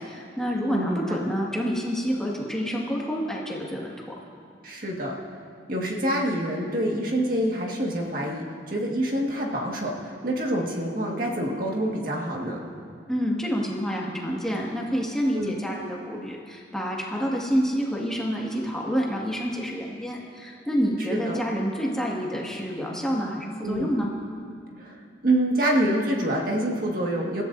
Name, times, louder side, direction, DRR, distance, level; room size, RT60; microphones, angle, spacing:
voice 1, 0.0-4.1 13.1-24.1, equal, 5° left, -4 dB, 1.9 m, -28 dB
voice 2, 0.7-1.2 4.6-5.2 5.7-12.7 15.3-15.5 21.1-21.4 23.6-24.0 24.8-25.0 25.2-27.4, right 1 dB, 50° right, -2 dB, 1.8 m, -26 dB
27.5 x 14.5 x 2.7 m, 2.3 s
head